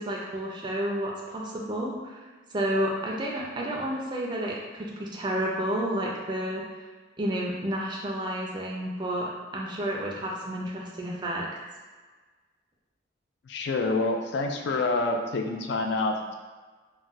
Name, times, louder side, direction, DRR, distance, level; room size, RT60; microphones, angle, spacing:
voice 1, 0.0-2.2 2.5-6.6 7.2-11.5, right 1 dB, 25° right, -2 dB, 0.4 m, -31 dB
voice 2, 13.5-16.3, left 2 dB, 60° left, 3 dB, 0.3 m, -27 dB
2.3 x 2.1 x 3.9 m, 1.4 s
head